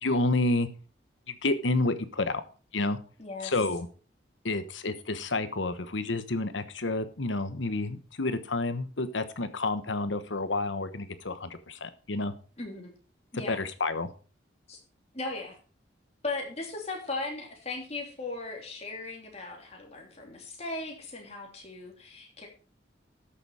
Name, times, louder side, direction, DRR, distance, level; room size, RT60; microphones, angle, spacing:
voice 1, 0.0-0.7 1.3-2.4 2.7-3.0 3.4-3.9 4.4-12.3 13.5-14.1, left 2 dB, 80° left, 11 dB, 1.1 m, -29 dB
voice 2, 3.2-3.5 12.6-12.9 13.3-13.6 14.7-14.8 15.1-15.6 16.2-22.5, left 3 dB, 35° left, 1 dB, 3.1 m, -37 dB
13.0 x 6.9 x 4.8 m, 0.37 s
head